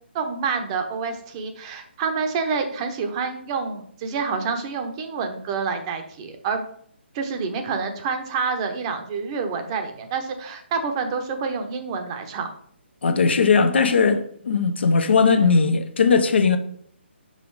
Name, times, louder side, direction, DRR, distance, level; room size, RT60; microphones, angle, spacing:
voice 1, 0.1-6.6 7.1-12.5, right 5 dB, 25° right, 0.9 m, -28 dB
voice 2, 13.0-16.6, left 5 dB, 65° left, 0.9 m, -18 dB
5.6 x 5.2 x 4.7 m
hypercardioid pair, 150°, 6 cm